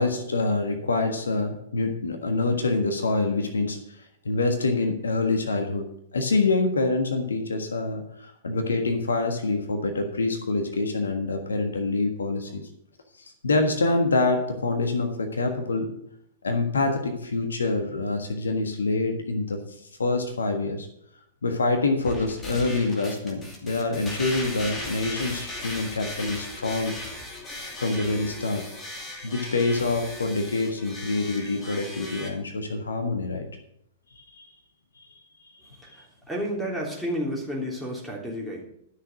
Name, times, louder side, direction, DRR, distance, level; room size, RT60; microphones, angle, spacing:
voice 1, 0.0-3.8 4.2-5.9 6.1-12.6 13.4-15.9 16.4-19.6 20.0-20.9 21.4-27.0 27.8-28.7 29.2-33.5 34.3-34.5 35.0-35.1 35.9-36.0, left 3 dB, 70° left, 5 dB, 1.5 m, -26 dB
sound 1, 22.0-32.3, left 1 dB, 15° left, 2.4 m, -37 dB
voice 2, 35.6-38.6, equal, ahead, -2 dB, 3.2 m, -31 dB
11.5 x 6.5 x 6.4 m, 0.74 s
figure-of-eight pair, 105°, 0 cm